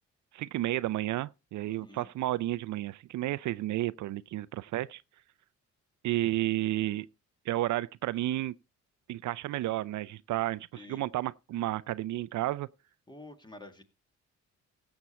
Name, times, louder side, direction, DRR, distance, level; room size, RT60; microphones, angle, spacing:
voice 1, 0.3-5.0 6.0-7.1 7.5-8.5 9.1-12.7, right 15 dB, 70° right, 0.5 m, -32 dB
voice 2, 1.7-2.1 10.7-11.1 13.1-13.8, left 2 dB, 15° left, 2.0 m, -49 dB
16.0 x 7.2 x 4.3 m
cardioid pair, 90°, 30 cm